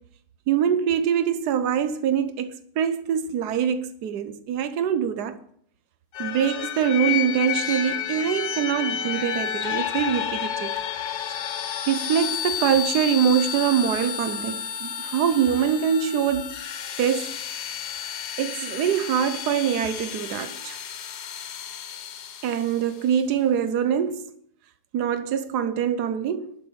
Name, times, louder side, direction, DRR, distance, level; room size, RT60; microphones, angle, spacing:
voice 1, 0.5-5.4 6.2-10.7 11.9-16.5 17.0-17.6 18.4-20.8 22.4-24.3 24.9-26.5, right 8 dB, 85° right, 1.3 m, -24 dB
sound 1, 6.1-22.9, left 9 dB, 80° left, 1.5 m, -31 dB
11.5 x 6.6 x 7.3 m
omnidirectional pair, 1.7 m